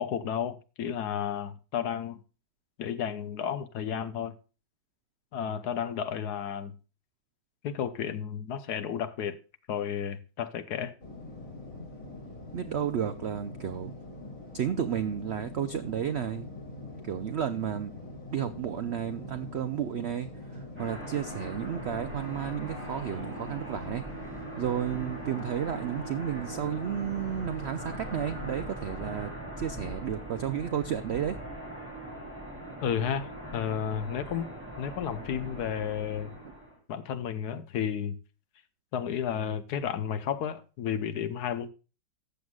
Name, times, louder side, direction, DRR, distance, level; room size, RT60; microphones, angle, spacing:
voice 1, 0.0-2.2 2.8-4.3 5.3-6.8 7.6-9.4 9.7-10.9 32.8-34.5 34.8-36.4 36.9-38.2 38.9-41.7, left 8 dB, 70° left, 1.3 m, -32 dB
sound 1, 11.0-28.7, left 2 dB, 50° left, 3.3 m, -43 dB
voice 2, 12.5-13.9 14.5-16.5 17.0-17.9 18.3-24.3 24.6-29.3 29.6-31.4, right 9 dB, 75° right, 0.6 m, -32 dB
sound 2, 20.7-36.8, right 1 dB, 5° right, 5.5 m, -41 dB
13.5 x 7.9 x 2.3 m
omnidirectional pair, 1.8 m